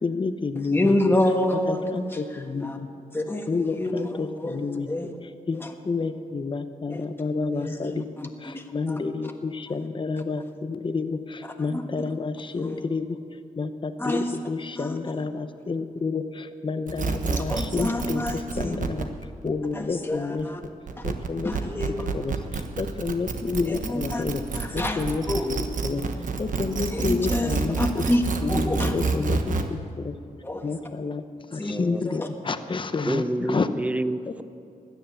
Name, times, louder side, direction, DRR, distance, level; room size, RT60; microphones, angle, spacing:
voice 1, 0.0-0.9 1.7-2.9 3.5-4.9 5.5-8.1 8.4-13.2 13.6-19.1 19.4-20.5 21.0-21.5 21.9-24.4 24.7-25.2 25.8-26.0 26.4-28.0 28.4-30.1 30.6-31.2 31.5-33.7, left 4 dB, 35° left, 10 dB, 0.9 m, -29 dB
voice 2, 0.7-1.8 2.1-2.2 2.6-2.8 3.1-5.1 5.5-5.7 6.9-7.0 7.5-9.0 11.7-11.8 12.6-12.8 14.0-14.3 14.8-15.0 17.2-18.8 19.7-20.6 21.0-21.1 21.4-22.1 23.7-24.2 24.5-25.7 26.9-28.2 28.5-29.2 30.4-30.7 31.6-31.7 32.0-32.3, left 1 dB, 15° left, 3 dB, 1.5 m, -28 dB
sound 1, 16.9-29.6, right 4 dB, 60° right, 1.3 m, -28 dB
voice 3, 31.7-32.2 33.1-34.4, right 1 dB, 10° right, 13 dB, 0.6 m, -28 dB
17.0 x 10.5 x 7.1 m, 2.6 s
cardioid pair, 85°, 15 cm